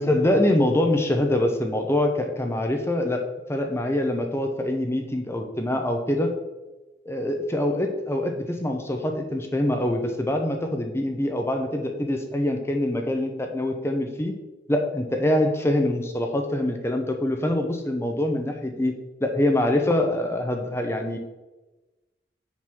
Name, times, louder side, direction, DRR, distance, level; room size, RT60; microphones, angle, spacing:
voice 1, 0.0-3.2 3.5-6.3 7.1-14.3 14.7-18.9 19.2-21.2, left 1 dB, 15° left, 4 dB, 0.7 m, -24 dB
7.3 x 3.9 x 6.2 m, 1.1 s
head